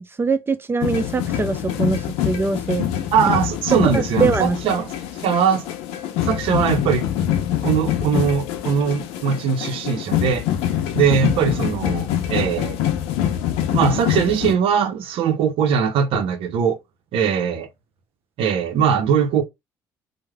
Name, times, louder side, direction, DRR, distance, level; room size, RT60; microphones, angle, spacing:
voice 1, 0.0-2.9 3.7-4.8, right 4 dB, 20° right, 0.6 m, -22 dB
sound 1, 0.8-14.6, left 11 dB, 70° left, 0.6 m, -24 dB
voice 2, 3.1-4.9 5.2-5.6 6.2-7.1 7.6-10.4 10.9-12.8 13.7-16.8 17.1-17.7 18.4-19.4, right 7 dB, 65° right, 0.7 m, -20 dB
3.1 x 2.1 x 3.4 m
hypercardioid pair, 55°, 10 cm